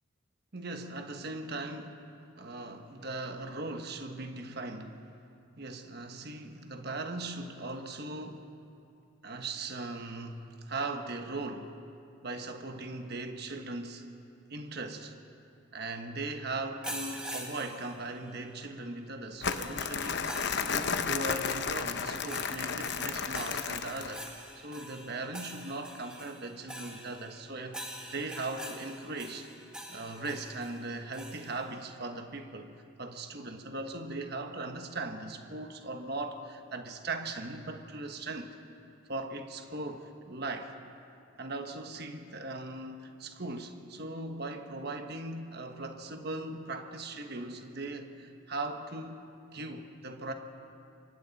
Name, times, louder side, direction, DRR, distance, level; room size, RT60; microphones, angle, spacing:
voice 1, 0.5-2.1 2.4-5.0 5.6-8.5 9.2-11.7 12.2-14.0 14.5-15.1 15.7-29.5 29.9-32.7 33.0-38.5 39.1-40.7 41.4-50.3, right 2 dB, 50° right, 5 dB, 1.2 m, -39 dB
sound 1, 16.8-18.5 19.5-31.7, equal, 5° right, 1.8 m, -45 dB
Crumpling crinkling, 19.4-24.3, left 6 dB, 55° left, 0.8 m, -33 dB
28.5 x 24.5 x 4.1 m, 2.6 s
head